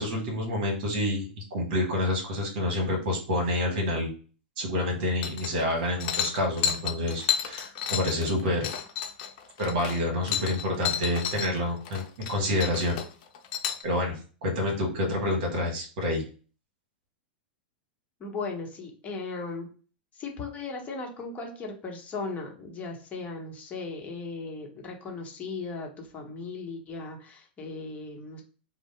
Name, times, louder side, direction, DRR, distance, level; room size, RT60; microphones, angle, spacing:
voice 1, 0.0-4.1 4.6-8.7 9.6-13.0 13.8-16.2, left 1 dB, 60° right, 1 dB, 1.3 m, -28 dB
sound 1, 5.2-5.7 6.0-11.5 11.8-12.3 12.6-13.8, left 8 dB, 55° left, 0.5 m, -31 dB
voice 2, 18.2-19.7 20.1-28.4, left 3 dB, 25° left, 1 dB, 0.9 m, -37 dB
2.6 x 2.1 x 3.2 m, 0.38 s
hypercardioid pair, 100°, 6 cm